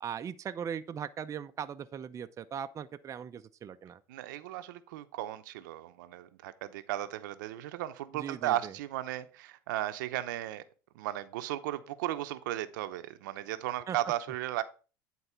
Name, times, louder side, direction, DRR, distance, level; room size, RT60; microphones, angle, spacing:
voice 1, 0.0-4.0 8.1-8.7 13.9-14.0, right 8 dB, 30° right, 0.6 m, -39 dB
voice 2, 4.1-10.6 10.9-14.6, right 14 dB, 85° right, 0.8 m, -35 dB
9.9 x 4.1 x 5.7 m
supercardioid pair, 100°, 10 cm